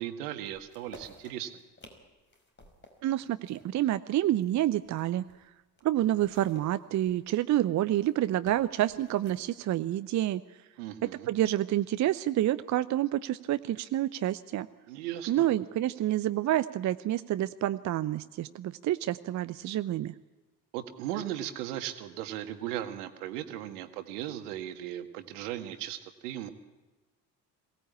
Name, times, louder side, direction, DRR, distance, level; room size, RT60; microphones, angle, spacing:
voice 1, 0.0-1.6 10.8-11.3 14.9-15.5 20.7-26.5, right 12 dB, 65° right, 9 dB, 1.8 m, -37 dB
sound 1, 0.5-5.5 5.8-9.6, left 2 dB, 25° left, 5.3 m, -56 dB
voice 2, 3.0-5.2 5.8-10.4 11.3-14.7 15.3-20.1, right 13 dB, 35° right, 14 dB, 0.7 m, -28 dB
22.5 x 17.0 x 8.6 m, 1.2 s
figure-of-eight pair, 55°, 49 cm